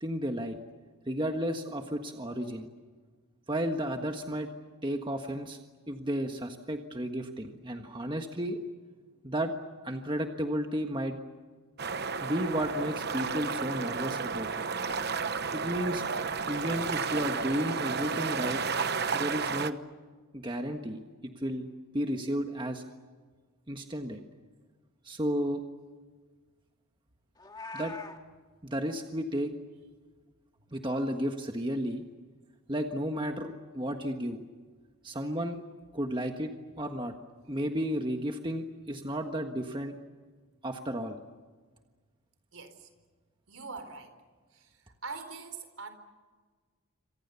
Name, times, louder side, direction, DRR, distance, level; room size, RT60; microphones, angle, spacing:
voice 1, 0.0-0.5 1.1-2.7 3.5-4.5 4.8-5.6 5.9-8.6 9.2-9.5 9.8-11.2 12.2-14.5 15.5-16.0 16.5-18.6 19.1-19.8 20.3-21.0 21.4-21.7 21.9-22.8 23.7-24.2 25.0-25.6 27.7-27.9 28.6-29.5 30.7-32.0 32.7-34.4 35.0-35.6 35.9-36.5 36.8-37.1 37.5-39.9 40.6-41.2, equal, 20° right, 4 dB, 1.5 m, -32 dB
sound 1, 11.8-19.7, right 5 dB, 50° right, 1.0 m, -32 dB
Meow, 27.4-28.2, left 3 dB, 20° left, 1.9 m, -42 dB
voice 2, 42.5-42.9 43.5-44.1 44.5-45.9, right 4 dB, 70° right, 8 dB, 4.2 m, -43 dB
27.5 x 26.5 x 7.0 m, 1.4 s
head